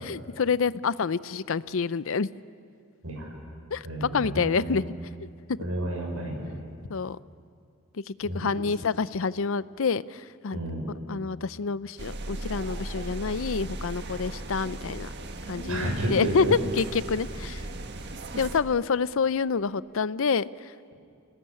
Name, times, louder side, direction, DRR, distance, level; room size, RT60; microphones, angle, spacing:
voice 1, 0.0-2.3 3.7-4.8 5.5-5.6 6.9-7.2 7.9-10.6 11.1-15.1 15.5-17.6 18.4-20.7, left 5 dB, 65° left, 17 dB, 0.5 m, -27 dB
voice 2, 3.8-4.7 5.6-6.4 8.2-8.6 10.5-10.8 15.7-16.6, right 1 dB, 80° right, 0 dB, 6.0 m, -31 dB
sound 1, 12.0-18.6, right 2 dB, 50° right, 1.6 m, -37 dB
26.5 x 19.5 x 9.9 m, 2.3 s
head